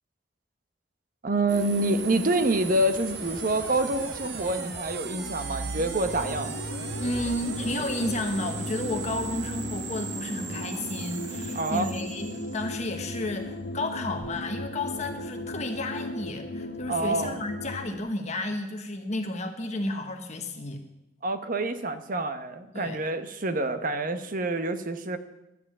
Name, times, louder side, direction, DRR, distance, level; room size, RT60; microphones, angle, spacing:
voice 1, 1.2-6.5 11.5-11.9 16.9-17.4 21.2-25.2, right 2 dB, 50° right, 10 dB, 1.0 m, -27 dB
sound 1, 1.5-13.4, right 4 dB, 65° right, 1.2 m, -38 dB
sound 2, 5.1-6.5 6.9-12.4 14.0-14.3, right 2 dB, 15° right, 1.5 m, -43 dB
sound 3, 6.0-18.0, left 1 dB, 65° left, 1.1 m, -37 dB
voice 2, 7.0-20.8 22.7-23.0, left 2 dB, 40° left, 5 dB, 1.1 m, -32 dB
12.0 x 7.8 x 8.5 m, 0.93 s
head